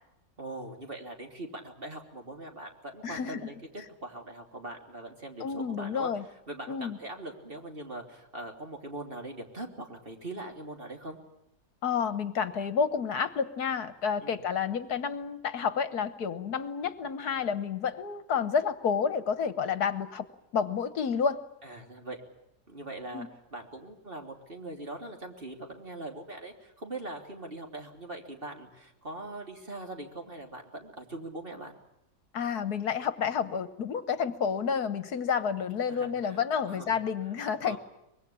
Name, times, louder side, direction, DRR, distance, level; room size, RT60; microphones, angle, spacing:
voice 1, 0.4-6.1 6.5-11.2 14.2-14.4 21.6-22.2 22.7-31.7 35.9-37.0 37.6-37.8, right 2 dB, 35° right, 3 dB, 3.5 m, -41 dB
voice 2, 3.0-3.5 5.4-6.2 6.7-7.0 11.8-20.3 20.5-21.4 23.1-23.3 32.3-37.8, left 6 dB, 70° left, 13 dB, 1.6 m, -30 dB
24.5 x 22.0 x 8.6 m, 0.84 s
omnidirectional pair, 1.8 m